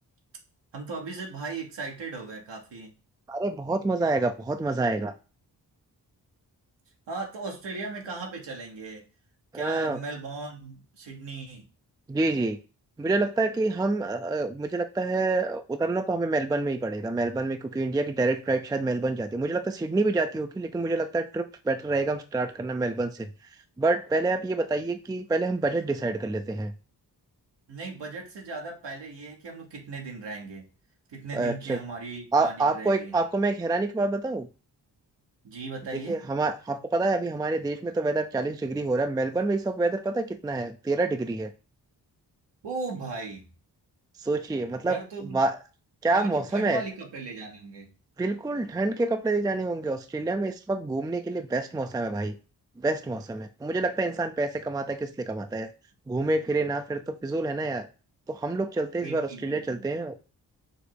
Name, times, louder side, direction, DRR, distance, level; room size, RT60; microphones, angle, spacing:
voice 1, 0.7-2.9 7.1-9.0 9.5-11.7 27.7-30.7 31.1-33.1 35.4-36.3 42.6-43.4 44.8-45.4 46.1-47.9 59.0-59.9, right 3 dB, 80° right, 1.2 m, -37 dB
voice 2, 3.3-5.1 9.5-10.0 12.1-12.6 13.0-23.3 23.8-26.7 31.3-31.8 32.3-34.5 35.9-41.5 44.2-45.0 45.3-45.6 46.0-46.8 48.2-52.4 52.8-55.7 56.1-57.9 58.3-60.1, right 2 dB, 10° right, 0.4 m, -27 dB
5.1 x 2.0 x 4.5 m
supercardioid pair, 40°, 42 cm